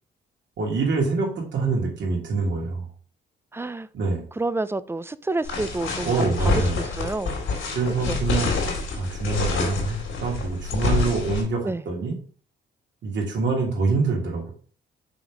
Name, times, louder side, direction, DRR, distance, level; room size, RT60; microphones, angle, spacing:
voice 1, 0.6-2.9 3.9-4.3 6.0-6.8 7.7-8.5 8.9-12.2 13.0-14.5, right 4 dB, 65° right, 2.7 m, -25 dB
voice 2, 3.5-3.9 4.4-6.3 7.0-7.4 8.1-8.2 11.6-11.8, right 2 dB, 10° right, 0.4 m, -28 dB
sound 1, 5.4-11.4, left 4 dB, 80° left, 2.7 m, -27 dB
6.1 x 4.0 x 4.8 m
cardioid pair, 90°, 20 cm